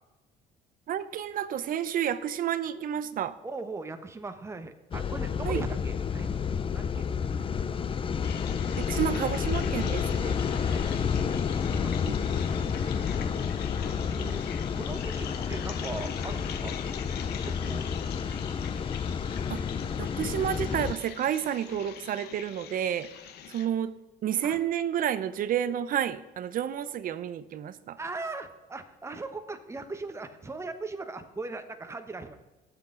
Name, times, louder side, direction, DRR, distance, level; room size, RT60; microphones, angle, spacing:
voice 1, 0.9-3.4 5.4-5.6 8.8-10.4 12.0-12.1 19.5-19.6 20.0-23.1 23.5-23.9 24.2-28.0, right 10 dB, 55° right, 14 dB, 0.8 m, -30 dB
voice 2, 3.4-6.3 6.7-7.7 10.5-11.1 11.4-12.0 12.6-12.7 13.1-14.4 14.7-16.8 17.4-17.8 18.1-18.3 24.4-24.6 28.0-32.4, right 3 dB, 15° right, 7 dB, 1.2 m, -40 dB
sound 1, 4.9-20.9, left 6 dB, 30° left, 0.6 m, -30 dB
sound 2, 8.2-23.7, left 9 dB, 75° left, 1.1 m, -43 dB
18.0 x 7.5 x 3.9 m, 1.1 s
cardioid pair, 110°, 17 cm